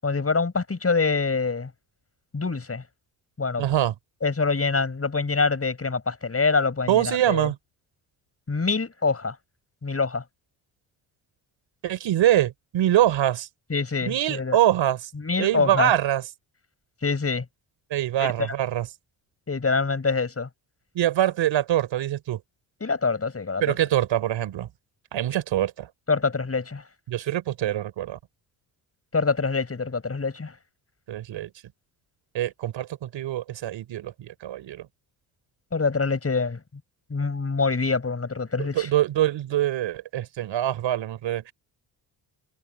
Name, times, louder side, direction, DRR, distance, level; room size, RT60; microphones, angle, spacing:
voice 1, 0.0-1.7 2.3-2.8 3.4-3.6 4.2-7.5 8.5-9.4 9.8-10.2 13.7-14.6 15.2-15.9 17.0-17.5 18.2-18.5 19.5-20.5 22.8-23.6 26.1-26.8 29.1-30.5 35.7-36.6 37.1-38.9, left 4 dB, 30° left, 7.1 m, -25 dB
voice 2, 3.6-4.0 6.9-7.6 11.8-13.5 14.1-15.1 15.4-16.2 17.9-18.9 20.9-22.4 23.6-24.7 25.1-25.9 27.1-28.2 31.1-31.5 32.3-34.9 38.6-41.5, right 12 dB, 70° right, 3.8 m, -24 dB
supercardioid pair, 60°, 46 cm